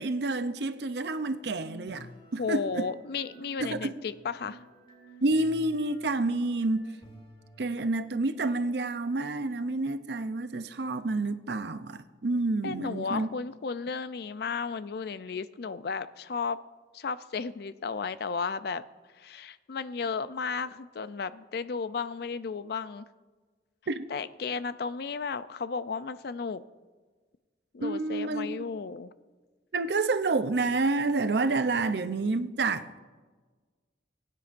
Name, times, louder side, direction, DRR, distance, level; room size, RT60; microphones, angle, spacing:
voice 1, 0.0-2.1 2.3-2.9 3.6-4.0 5.2-6.9 7.6-13.3 23.9-24.0 27.8-28.7 29.7-33.0, right 3 dB, 65° right, 0.6 m, -29 dB
sound 1, 1.2-7.6, equal, 30° left, 2.8 m, -51 dB
voice 2, 2.4-4.6 12.6-16.6 16.9-18.8 19.1-23.1 24.1-26.6 27.7-29.1, left 5 dB, 60° left, 0.4 m, -34 dB
21.0 x 9.8 x 2.6 m
head